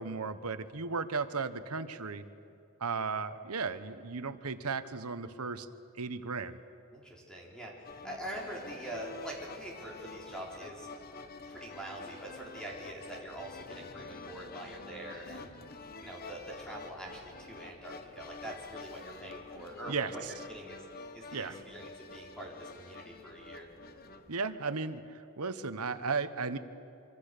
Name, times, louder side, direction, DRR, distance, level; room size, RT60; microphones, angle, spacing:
voice 1, 0.0-2.2 2.8-5.7 6.0-6.6 19.9-20.3 21.3-21.6 24.3-25.0 25.4-26.6, right 4 dB, 80° right, 11 dB, 1.2 m, -35 dB
voice 2, 6.9-10.9 11.5-15.5 16.0-20.8 21.1-23.7, right 1 dB, 5° left, -2 dB, 4.1 m, -44 dB
sound 1, 7.9-24.4, left 3 dB, 40° left, 1.2 m, -48 dB
25.5 x 25.0 x 6.8 m, 2.7 s
head